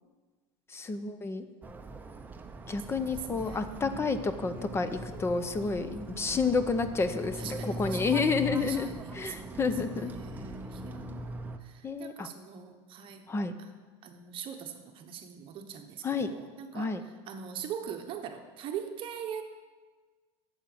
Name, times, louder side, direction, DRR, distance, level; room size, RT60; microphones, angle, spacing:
voice 1, 0.7-1.4 2.7-5.9 6.2-10.1 11.8-12.3 13.3-13.6 16.0-16.4 16.7-17.0, left 4 dB, 20° left, 11 dB, 0.6 m, -30 dB
sound 1, 1.6-11.6, right 1 dB, 15° right, 0.7 m, -41 dB
voice 2, 2.9-4.1 5.6-6.4 7.3-8.3 8.6-11.3 11.6-13.2 13.6-13.7 14.0-17.0 17.3-19.4, right 7 dB, 40° right, 6 dB, 1.0 m, -42 dB
8.8 x 7.1 x 7.7 m, 1.4 s
supercardioid pair, 135°, 14 cm